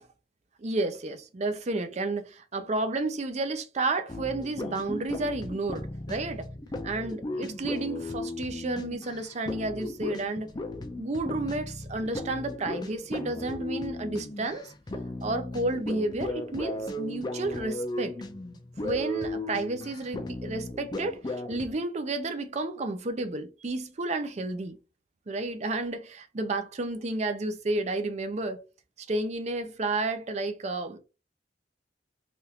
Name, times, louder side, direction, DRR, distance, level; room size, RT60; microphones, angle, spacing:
voice 1, 0.6-6.4 6.8-10.5 11.0-14.7 15.2-18.2 18.8-24.8 25.3-28.6 29.1-31.0, right 2 dB, 40° right, 0.5 m, -31 dB
sound 1, 4.1-21.8, left 1 dB, 25° left, 0.4 m, -36 dB
3.4 x 2.5 x 2.8 m
head